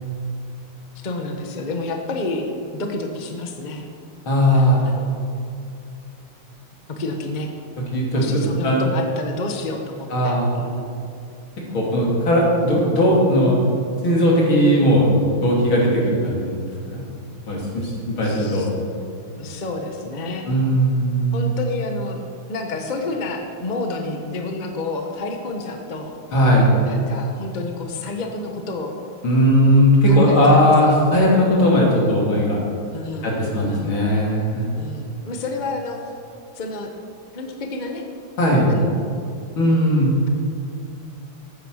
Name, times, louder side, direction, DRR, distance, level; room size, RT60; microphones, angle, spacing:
voice 1, 1.0-3.9 4.5-5.2 6.9-7.5 8.1-10.9 18.2-18.7 19.3-20.5 21.3-22.2 22.5-26.2 26.8-29.0 30.1-31.0 32.9-33.3 33.6-33.9 34.7-36.1 36.5-36.9 37.3-38.0 38.7-39.2, left 2 dB, 30° left, 3 dB, 1.0 m, -30 dB
voice 2, 4.3-4.9 7.9-8.8 10.1-10.5 11.7-13.6 14.0-16.5 16.9-17.0 17.5-18.7 20.5-21.4 26.3-26.7 29.2-32.6 33.2-34.7 38.4-38.7 39.6-40.1, equal, 70° left, -4 dB, 3.7 m, -17 dB
14.0 x 9.4 x 6.4 m, 2.4 s
omnidirectional pair, 2.3 m